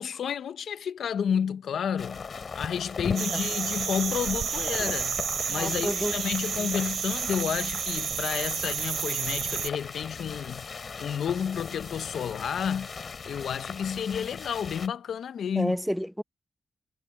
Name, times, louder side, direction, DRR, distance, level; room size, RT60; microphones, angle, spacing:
voice 1, 0.0-2.3 2.5-5.2 5.5-10.6 11.0-12.9 13.3-15.8, left 8 dB, 85° left, 0.7 m, -31 dB
sound 1, 2.0-14.9, left 5 dB, 45° left, 6.9 m, -39 dB
sound 2, 3.2-9.7, right 8 dB, 80° right, 0.4 m, -31 dB
voice 2, 5.6-6.1 6.6-6.7 15.6-16.2, equal, ahead, 0.3 m, -30 dB
wide cardioid pair, 145°, 0 cm